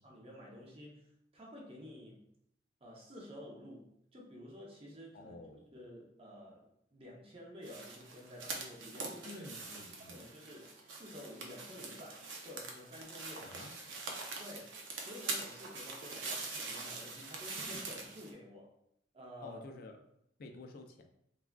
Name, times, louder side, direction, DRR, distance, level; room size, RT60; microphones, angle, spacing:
voice 1, 0.0-2.3 2.8-9.5 10.0-13.6 14.4-18.7 19.1-19.6, left 1 dB, 30° right, -1 dB, 0.5 m, -51 dB
voice 2, 5.1-5.7 9.2-10.2 13.4-13.7 19.4-20.0 20.4-21.0, left 2 dB, 50° left, 5 dB, 0.3 m, -50 dB
sound 1, 7.6-18.3, right 3 dB, 85° right, 0.5 m, -44 dB
3.3 x 2.3 x 2.2 m, 0.75 s
head